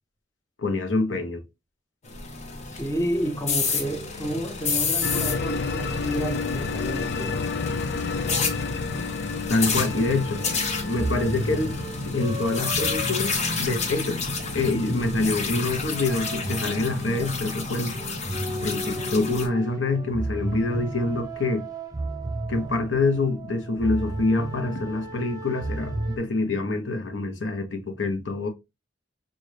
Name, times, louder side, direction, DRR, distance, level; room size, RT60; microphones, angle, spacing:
voice 1, 0.6-1.4 9.5-10.4 10.8-11.7 12.0-14.2 14.5-17.9 18.6-21.7 22.5-28.5, left 2 dB, 75° left, 1.0 m, -26 dB
sound 1, 2.0-19.5, left 4 dB, 40° left, 0.9 m, -30 dB
voice 2, 2.7-7.4, right 1 dB, 15° left, 0.6 m, -30 dB
sound 2, 5.0-13.9, left 4 dB, 60° left, 0.5 m, -32 dB
sound 3, 9.6-26.2, right 1 dB, 20° right, 0.6 m, -34 dB
5.4 x 2.5 x 3.2 m
head